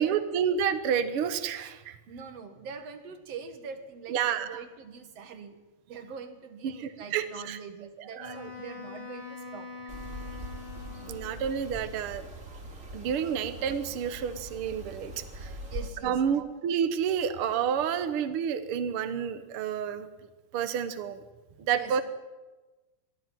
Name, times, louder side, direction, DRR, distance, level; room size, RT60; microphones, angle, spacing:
voice 1, 0.0-2.0 4.1-4.5 6.6-7.6 8.2-8.3 11.1-12.2 12.9-15.5 16.0-20.1 20.5-21.2 21.6-22.0, right 8 dB, 85° right, 10 dB, 1.2 m, -29 dB
voice 2, 2.1-5.6 5.9-9.7 15.7-16.7 18.0-18.1 21.5-22.0, right 6 dB, 50° right, 7 dB, 2.4 m, -43 dB
Wind instrument woodwind instrument, 8.2-11.8, left 4 dB, 15° left, 3.4 m, -44 dB
sound 1, 9.9-15.9, equal, 20° right, 2.8 m, -42 dB
23.0 x 15.0 x 9.2 m, 1.2 s
omnidirectional pair, 4.2 m